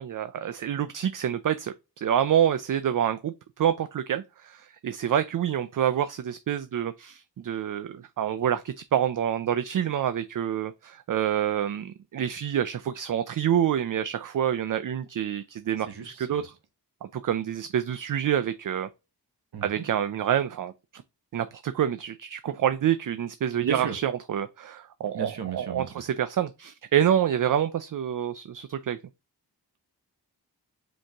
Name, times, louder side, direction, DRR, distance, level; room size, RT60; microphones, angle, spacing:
voice 1, 0.0-16.4 17.1-18.9 19.6-21.0 21.3-29.0, right 9 dB, 55° right, 0.5 m, -27 dB
voice 2, 15.9-16.5 19.5-19.8 23.6-24.0 25.1-26.0, right 7 dB, 80° right, 1.1 m, -35 dB
5.2 x 2.9 x 3.4 m
wide cardioid pair, 90°, 39 cm